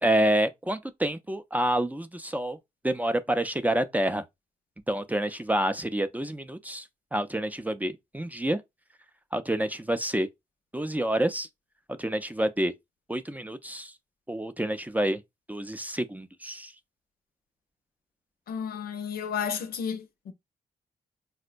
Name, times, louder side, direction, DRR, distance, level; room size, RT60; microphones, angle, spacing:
voice 1, 0.0-2.6 2.8-4.2 4.9-8.6 9.3-10.3 10.7-11.5 12.0-12.7 13.1-13.9 14.3-15.2 15.5-16.7, right 1 dB, 10° right, 0.4 m, -28 dB
voice 2, 18.5-20.3, left 7 dB, 80° left, 0.6 m, -32 dB
4.3 x 2.1 x 2.4 m
cardioid pair, 65°, 15 cm